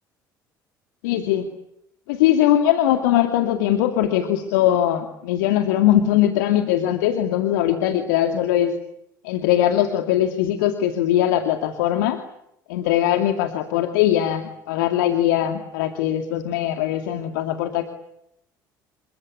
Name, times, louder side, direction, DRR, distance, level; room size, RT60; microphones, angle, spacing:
voice 1, 1.0-1.5 2.1-8.7 9.2-12.2 12.7-17.8, left 11 dB, 65° left, 7 dB, 2.3 m, -21 dB
29.0 x 24.0 x 8.5 m, 0.79 s
figure-of-eight pair, 60°, 11 cm